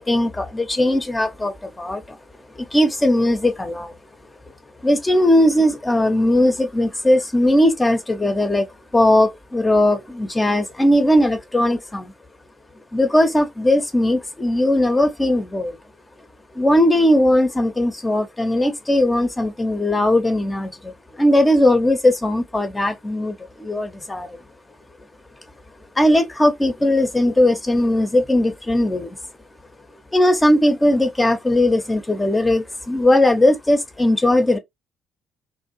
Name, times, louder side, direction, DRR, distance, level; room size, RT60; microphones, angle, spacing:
voice 1, 0.0-2.2 2.6-3.9 4.8-8.7 8.9-12.1 12.9-15.8 16.5-24.3 26.0-29.2 30.1-34.6, left 1 dB, 20° left, 0.5 m, -18 dB
2.5 x 2.1 x 2.8 m
figure-of-eight pair, 45°, 0 cm